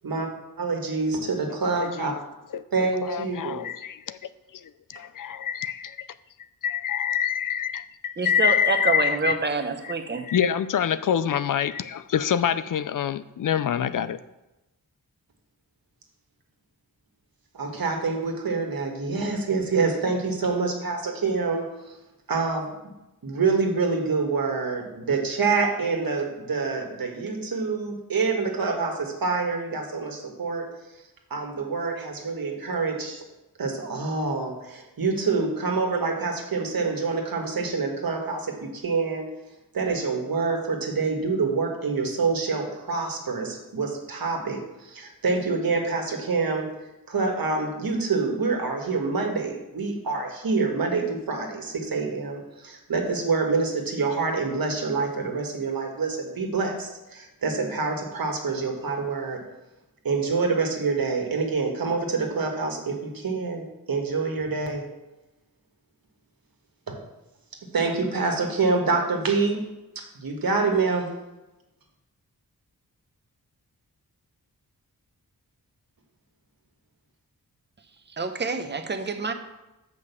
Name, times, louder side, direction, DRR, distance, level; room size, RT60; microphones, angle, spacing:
voice 1, 0.6-2.1 2.7-3.6 17.5-21.9 22.3-22.7 23.2-30.7 31.3-33.2 33.6-39.3 39.7-46.7 47.1-59.4 60.0-64.8 66.9-67.0 67.7-69.6 70.1-71.1, right 4 dB, 70° right, 2 dB, 1.6 m, -26 dB
voice 2, 1.8-2.2 2.5-2.6 3.0-4.2 4.9-6.1 6.6-9.3 10.3-14.2, left 9 dB, 60° left, 14 dB, 0.5 m, -26 dB
voice 3, 8.2-10.3 78.2-79.3, right 4 dB, 30° right, 7 dB, 0.8 m, -27 dB
6.5 x 5.2 x 6.9 m, 1.0 s
cardioid pair, 65°, 36 cm